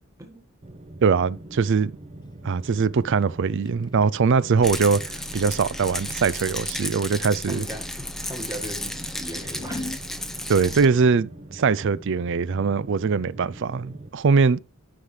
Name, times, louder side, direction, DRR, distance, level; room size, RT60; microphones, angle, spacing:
sound 1, 0.6-14.1, right 1 dB, 30° right, 0.7 m, -43 dB
voice 1, 1.0-2.0 2.4-7.6 10.5-14.6, right 5 dB, 60° right, 0.4 m, -22 dB
Scissors, 2.2-8.4 8.9-10.1, left 2 dB, 20° left, 0.4 m, -42 dB
Rattle, 4.6-10.9, left 1 dB, ahead, 0.8 m, -33 dB
voice 2, 7.5-7.9 8.3-9.9, equal, 15° right, 1.7 m, -37 dB
13.0 x 5.7 x 3.2 m
head